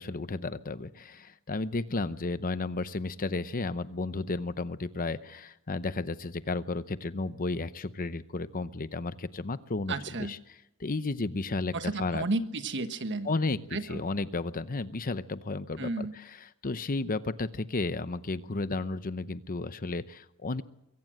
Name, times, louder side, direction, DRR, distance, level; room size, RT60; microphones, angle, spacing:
voice 1, 0.0-9.9 10.3-10.4 10.8-11.7 12.0-12.2 13.2-16.1 16.6-20.6, left 3 dB, 40° left, 13 dB, 0.8 m, -33 dB
voice 2, 9.9-10.3 11.7-13.3 13.7-14.0 15.8-16.1, right 2 dB, 55° right, 9 dB, 1.3 m, -32 dB
23.0 x 16.5 x 7.8 m, 0.85 s
head